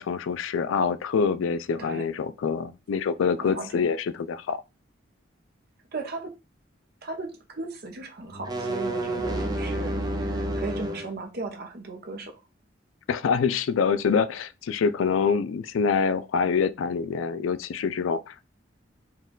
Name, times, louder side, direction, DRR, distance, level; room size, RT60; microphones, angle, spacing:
voice 1, 0.0-4.6 13.1-18.4, left 5 dB, 90° left, 0.4 m, -25 dB
voice 2, 3.4-3.9 5.9-6.3 7.0-12.3, right 3 dB, 55° right, 0.8 m, -36 dB
sound 1, 8.3-11.1, right 1 dB, 20° right, 0.5 m, -29 dB
4.3 x 2.3 x 3.7 m
head